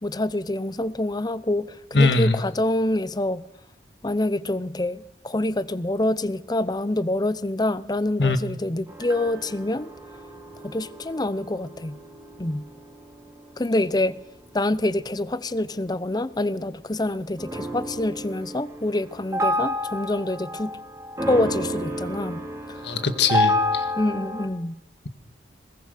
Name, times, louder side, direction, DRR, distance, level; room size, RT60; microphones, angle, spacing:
voice 1, 0.0-3.4 4.0-9.9 10.6-12.0 12.4-12.7 13.6-14.2 14.5-20.7 21.3-22.4 22.7-22.8 24.0-24.8, left 1 dB, 25° left, 0.7 m, -26 dB
voice 2, 1.9-2.4 8.2-8.4 22.8-23.9, left 3 dB, 75° left, 1.9 m, -21 dB
sound 1, 8.9-16.6 17.4-24.5, left 1 dB, 15° right, 4.3 m, -30 dB
21.0 x 20.5 x 6.6 m
head